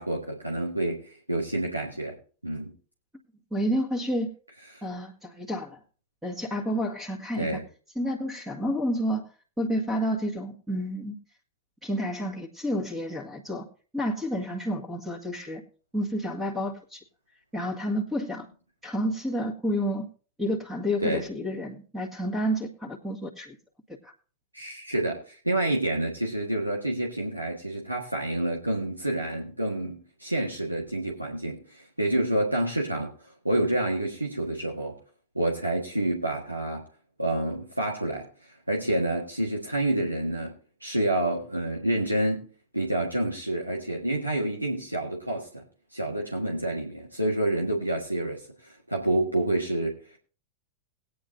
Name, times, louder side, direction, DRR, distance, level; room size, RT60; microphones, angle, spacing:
voice 1, 0.0-2.2 2.4-2.7 4.7-4.8 7.4-7.6 21.0-21.2 24.5-33.1 33.4-34.9 35.3-36.8 37.2-42.5 42.7-45.6 45.9-50.0, right 1 dB, 90° right, -1 dB, 1.6 m, -28 dB
voice 2, 3.5-4.3 4.8-5.8 6.2-7.6 8.0-9.3 9.6-11.1 11.8-13.7 13.9-15.6 15.9-17.0 17.5-18.5 18.8-20.1 20.4-23.6 24.0-24.1, equal, 10° right, 2 dB, 1.8 m, -30 dB
19.0 x 9.2 x 2.7 m, 0.39 s
figure-of-eight pair, 90°, 0 cm